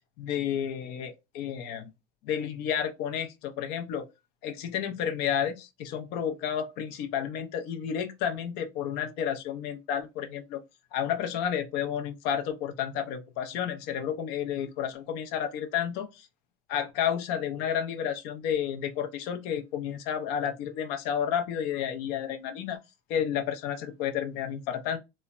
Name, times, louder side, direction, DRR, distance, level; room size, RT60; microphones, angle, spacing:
voice 1, 0.2-1.9 2.2-4.1 4.4-10.6 10.9-16.3 16.7-22.8 23.1-25.0, left 9 dB, 60° left, 0.6 m, -31 dB
3.1 x 2.1 x 2.4 m
supercardioid pair, 145°, 19 cm